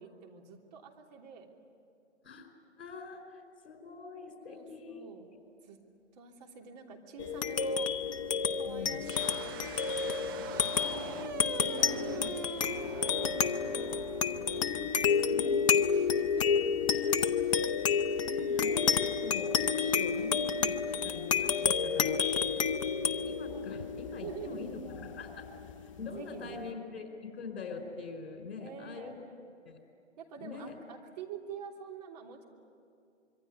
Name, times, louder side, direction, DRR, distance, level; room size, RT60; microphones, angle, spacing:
voice 1, 0.0-1.5 4.5-5.3 5.6-5.8 6.1-7.9 8.5-10.7 11.8-14.1 14.3-15.6 15.9-16.6 24.2-24.9 26.0-26.8 28.6-29.4 30.2-32.5, right 6 dB, 35° right, 1 dB, 3.2 m, -48 dB
voice 2, 2.8-5.4 8.6-9.1 10.7-12.3 13.2-13.3 15.3-15.8 16.9-17.6 18.2-20.8 21.0-22.2 22.6-22.7 23.3-25.5 25.8-29.1 29.6-29.8 30.4-30.7, left 4 dB, 55° left, 4 dB, 4.8 m, -43 dB
sound 1, 7.2-26.1, left 6 dB, 30° left, 0.7 m, -30 dB
sound 2, 9.0-15.8, right 7 dB, 20° right, 0.7 m, -44 dB
26.0 x 23.5 x 9.7 m, 2.4 s
figure-of-eight pair, 145°, 36 cm